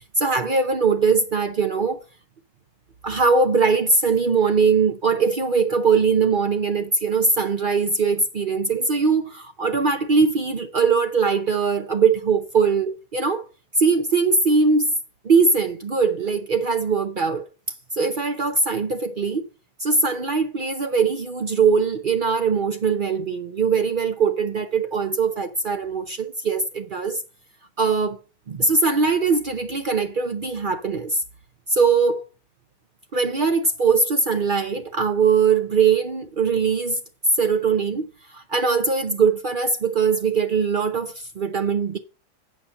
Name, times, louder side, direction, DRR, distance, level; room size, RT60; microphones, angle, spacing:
voice 1, 0.2-2.0 3.0-13.4 13.8-14.9 15.2-17.5 17.9-19.4 19.8-27.2 27.8-28.2 28.5-31.2 31.7-32.2 33.1-37.0 37.4-42.0, right 5 dB, 85° right, 0.4 m, -21 dB
8.6 x 5.7 x 6.4 m
omnidirectional pair, 1.9 m